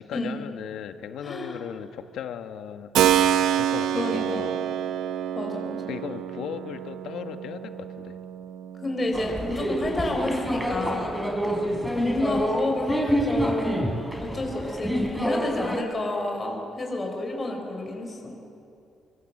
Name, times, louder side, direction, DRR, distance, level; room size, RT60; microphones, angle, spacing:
voice 1, 0.0-2.9 3.5-4.6 5.9-8.2, left 8 dB, 75° left, 8 dB, 1.4 m, -37 dB
voice 2, 1.2-1.6 3.9-4.5 5.3-5.8 8.8-11.2 11.9-13.9 14.2-18.4, left 2 dB, 20° left, 1 dB, 5.1 m, -29 dB
Keyboard (musical), 2.9-11.6, right 10 dB, 90° right, 0.9 m, -28 dB
sound 1, 9.1-15.8, equal, ahead, 3.9 m, -27 dB
25.0 x 24.5 x 7.8 m, 2.6 s
cardioid pair, 140°, 0 cm